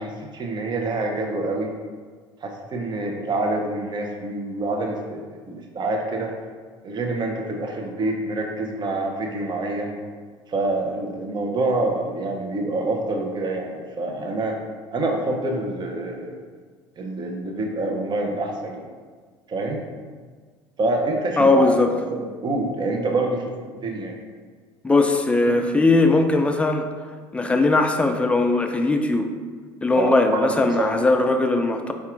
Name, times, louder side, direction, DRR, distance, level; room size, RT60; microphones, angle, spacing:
voice 1, 0.0-1.7 2.4-6.3 6.8-10.0 10.5-14.5 14.9-16.4 17.0-18.9 19.5-19.8 20.8-24.2 29.9-31.0, right 2 dB, 30° right, 1 dB, 0.6 m, -26 dB
voice 2, 21.4-21.9 24.8-26.9 27.3-29.3 29.8-31.9, left 2 dB, 10° left, 5 dB, 0.4 m, -19 dB
4.1 x 2.3 x 3.7 m, 1.5 s
hypercardioid pair, 70°, 15 cm